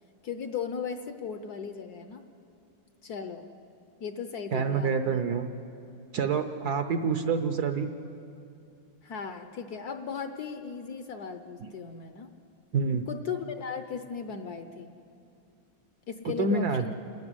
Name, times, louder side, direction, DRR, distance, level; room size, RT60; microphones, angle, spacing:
voice 1, 0.2-2.2 3.0-3.5 4.0-5.2 9.0-12.3 13.1-14.9 16.1-17.0, left 6 dB, 60° left, 8 dB, 1.2 m, -37 dB
voice 2, 4.5-5.5 6.1-7.9 11.6-11.7 12.7-13.1 16.4-16.8, right 5 dB, 60° right, 8 dB, 1.1 m, -27 dB
28.0 x 12.5 x 9.8 m, 2.5 s
omnidirectional pair, 2.3 m